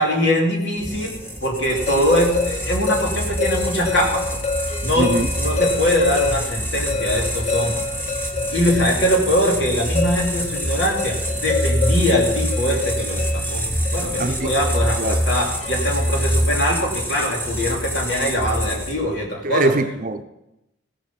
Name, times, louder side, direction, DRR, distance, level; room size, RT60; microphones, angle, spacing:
voice 1, 0.0-4.4 4.8-7.7 8.5-13.7 13.9-19.7, equal, 70° left, 3.1 m, -22 dB
sound 1, 0.8-19.1, equal, 10° left, 1.8 m, -26 dB
sound 2, 1.7-16.3, left 4 dB, 35° left, 0.8 m, -28 dB
voice 2, 5.0-5.3 14.2-14.5 15.0-15.2 19.4-20.2, right 2 dB, 45° right, 0.7 m, -22 dB
16.0 x 7.9 x 5.9 m
head